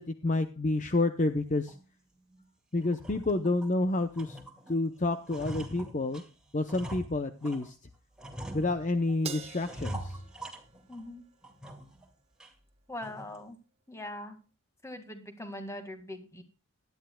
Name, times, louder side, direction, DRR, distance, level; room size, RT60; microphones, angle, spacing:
voice 1, 0.0-1.7 2.7-4.4 4.7-6.2 6.5-7.8 8.5-10.2, left 2 dB, 35° left, 8 dB, 0.7 m, -29 dB
sound 1, 1.7-1.8 2.3-2.4 2.8-3.8 4.1-4.8 5.0-7.7 8.2-9.1 9.6-11.1 11.4-12.0 12.4-12.5 13.0-13.4, equal, 5° right, 2.1 m, -43 dB
Crash cymbal, 9.2-11.8, right 7 dB, 30° right, 1.0 m, -45 dB
voice 2, 10.9-11.2 12.9-13.6 13.9-14.4 14.8-16.4, left 1 dB, 15° left, 7 dB, 2.0 m, -41 dB
18.0 x 11.5 x 2.3 m, 0.32 s
head